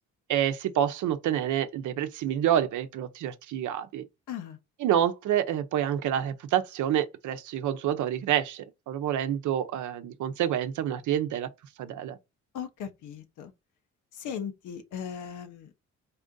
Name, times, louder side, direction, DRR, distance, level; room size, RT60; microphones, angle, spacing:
voice 1, 0.3-4.1 4.8-11.5 11.8-12.2, right 10 dB, 75° right, 0.7 m, -28 dB
voice 2, 4.3-4.6 12.5-13.5 14.2-15.8, left 8 dB, 80° left, 0.9 m, -38 dB
4.3 x 2.6 x 3.7 m
cardioid pair, 90°, 30 cm